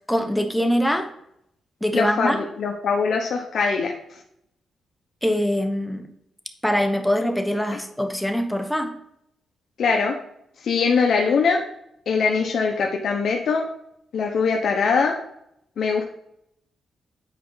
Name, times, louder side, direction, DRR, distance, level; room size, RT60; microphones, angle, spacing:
voice 1, 0.1-1.1 1.8-2.4 5.2-6.1 6.6-9.0, equal, 5° left, 1.0 m, -23 dB
voice 2, 1.9-3.9 9.8-10.1 10.6-11.6 12.1-13.6 14.1-15.2 15.8-16.0, left 5 dB, 65° left, 0.9 m, -22 dB
8.5 x 4.6 x 3.9 m
cardioid pair, 105°, 0 cm